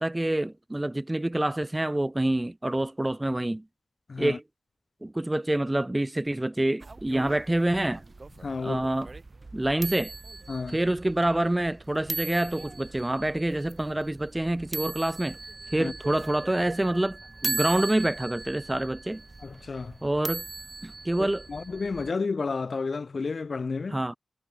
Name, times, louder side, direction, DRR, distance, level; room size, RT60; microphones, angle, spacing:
voice 1, 0.0-3.6 4.2-4.4 5.0-8.0 8.6-9.1 9.5-10.1 10.7-15.4 15.7-19.2 20.0-20.4 20.8-21.4 23.9-24.1, right 1 dB, 15° right, 0.5 m, -27 dB
voice 2, 4.1-4.4 8.4-8.9 10.5-10.8 15.7-15.9 19.4-20.0 21.2-24.0, left 4 dB, 55° left, 6.1 m, -31 dB
sound 1, 6.8-22.1, right 3 dB, 40° right, 1.4 m, -39 dB
cardioid pair, 60°, 0 cm